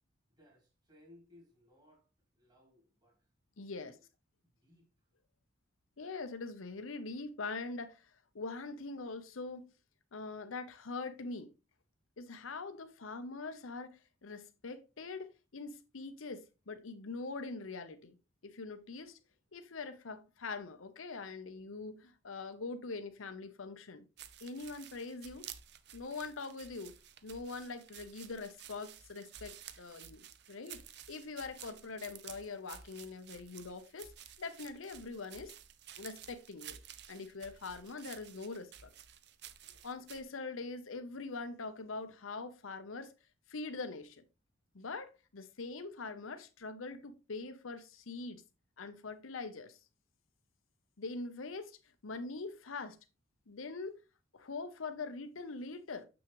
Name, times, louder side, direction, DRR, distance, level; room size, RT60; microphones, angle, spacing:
voice 1, 0.3-2.1 2.3-3.3 3.7-4.1 4.4-5.1 19.8-20.0 21.6-21.8 39.6-39.9, left 1 dB, 20° right, 2.3 m, -64 dB
voice 2, 3.6-4.0 6.0-9.7 10.1-11.5 12.2-18.2 18.4-19.2 19.5-24.0 24.4-25.5 25.9-26.9 27.2-30.8 31.1-34.1 34.4-35.5 36.0-36.8 37.1-38.9 39.8-43.1 43.5-44.2 44.7-48.4 48.8-49.8 51.0-51.7 52.0-53.0 53.5-54.0 54.3-56.1, left 3 dB, 90° left, 0.8 m, -43 dB
sound 1, 24.2-40.2, right 10 dB, 55° right, 0.6 m, -53 dB
7.2 x 6.2 x 3.0 m
head